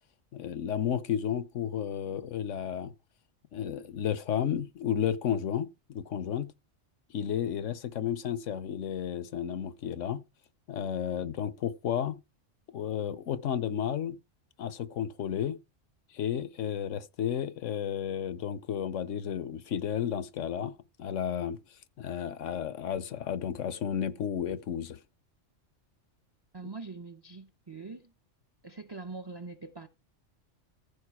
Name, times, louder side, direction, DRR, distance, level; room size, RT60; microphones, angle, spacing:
voice 1, 0.3-2.9 3.5-6.5 7.1-10.2 10.7-12.2 12.7-14.2 14.6-15.6 16.1-21.6 22.0-25.0, left 9 dB, 75° left, 1.2 m, -32 dB
voice 2, 26.5-28.1 28.6-29.9, right 3 dB, 25° right, 0.6 m, -43 dB
14.5 x 5.3 x 4.7 m
omnidirectional pair, 1.3 m